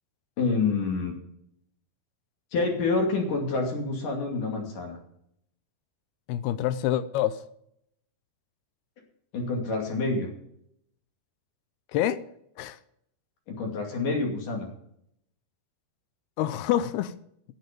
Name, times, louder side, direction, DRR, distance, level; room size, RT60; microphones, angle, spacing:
voice 1, 0.4-1.1 2.5-5.0 9.3-10.3 13.5-14.7, left 3 dB, 55° left, 1 dB, 3.9 m, -27 dB
voice 2, 6.3-7.4 11.9-12.2 12.6-12.8 16.4-17.1, left 12 dB, 80° left, 14 dB, 2.5 m, -26 dB
12.0 x 10.5 x 5.2 m, 0.73 s
omnidirectional pair, 4.7 m